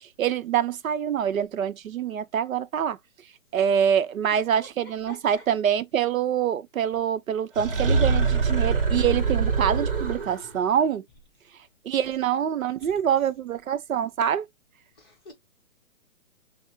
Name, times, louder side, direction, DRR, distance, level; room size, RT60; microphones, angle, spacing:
voice 1, 0.0-3.0 3.5-11.0 11.8-14.4, right 9 dB, 85° right, 0.7 m, -25 dB
voice 2, 5.1-5.4 12.8-12.9 15.0-15.3, left 2 dB, 20° left, 0.9 m, -46 dB
sound 1, 7.6-10.6, right 4 dB, 45° right, 0.8 m, -24 dB
5.6 x 2.1 x 2.9 m
hypercardioid pair, 175°, 40 cm